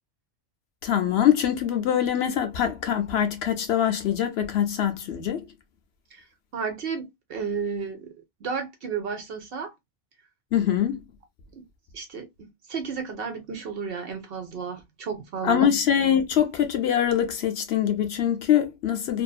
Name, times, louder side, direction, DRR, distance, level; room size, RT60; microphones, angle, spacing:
voice 1, 0.8-5.4 10.5-11.0 15.4-19.2, left 9 dB, 65° left, 0.8 m, -23 dB
voice 2, 6.5-8.1 8.4-9.7 11.5-11.6 11.9-15.7, right 6 dB, 60° right, 0.7 m, -33 dB
2.7 x 2.5 x 2.2 m
omnidirectional pair, 1.2 m